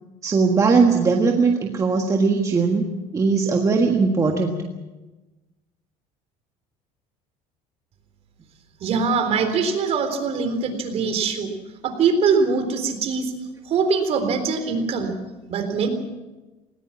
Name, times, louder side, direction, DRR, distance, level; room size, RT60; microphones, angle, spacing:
voice 1, 0.2-2.9 3.1-4.6, right 4 dB, 20° right, 2 dB, 1.6 m, -19 dB
voice 2, 8.8-11.5 11.8-13.3 13.7-15.1 15.5-15.9, right 5 dB, 45° right, 6 dB, 3.8 m, -22 dB
19.5 x 19.0 x 7.4 m, 1.1 s
cardioid pair, 145°, 15 cm